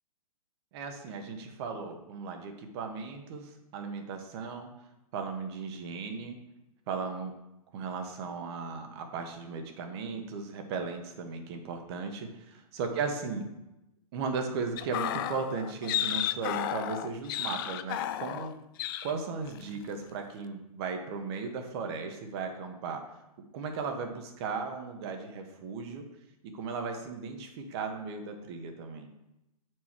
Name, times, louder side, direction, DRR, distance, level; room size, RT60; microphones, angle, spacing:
voice 1, 0.7-4.7 5.1-6.4 6.9-7.3 7.7-13.4 14.1-18.6 19.0-23.0 23.5-26.0 26.5-29.1, right 5 dB, 45° right, 5 dB, 1.3 m, -36 dB
sound 1, 14.8-18.5 18.8-19.1 19.5-19.7, left 11 dB, 35° left, 0.4 m, -33 dB
8.1 x 4.7 x 4.5 m, 0.92 s
hypercardioid pair, 130°, 19 cm